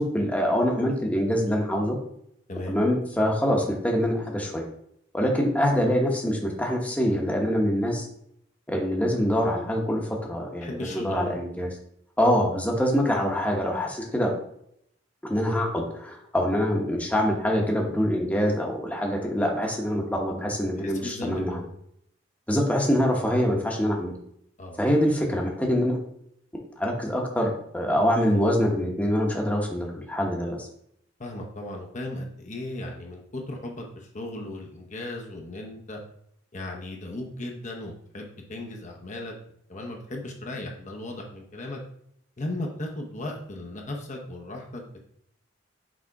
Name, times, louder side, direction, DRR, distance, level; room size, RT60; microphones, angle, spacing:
voice 1, 0.0-2.0 2.7-4.6 5.1-8.1 8.7-11.7 12.2-14.3 15.2-21.6 22.5-24.1 24.8-26.0 26.7-30.7, equal, 10° left, 0 dB, 1.0 m, -25 dB
voice 2, 2.5-2.8 10.6-11.4 20.8-21.7 24.6-24.8 31.2-36.0 36.5-39.3 39.7-41.8 42.4-45.1, left 1 dB, 40° left, 1 dB, 0.8 m, -36 dB
6.2 x 3.5 x 4.6 m, 0.72 s
head